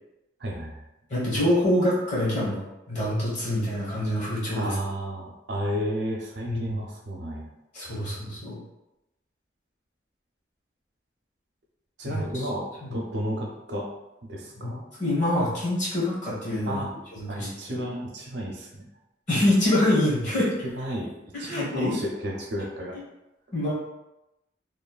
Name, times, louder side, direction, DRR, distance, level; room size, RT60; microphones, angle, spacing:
voice 1, 0.4-0.8 4.5-7.5 7.9-8.4 12.0-12.7 12.9-13.9 14.3-14.9 16.6-16.9 17.3-18.8 20.6-21.1 21.4-23.0, equal, 70° right, -1 dB, 0.5 m, -32 dB
voice 2, 1.1-4.7 6.5-6.8 7.7-8.6 12.1-12.2 12.8-13.0 14.6-14.7 15.0-16.9 17.2-17.8 19.3-20.5 21.4-22.0 23.5-23.7, left 1 dB, 40° left, -7 dB, 1.1 m, -25 dB
3.0 x 2.1 x 2.3 m, 0.93 s
head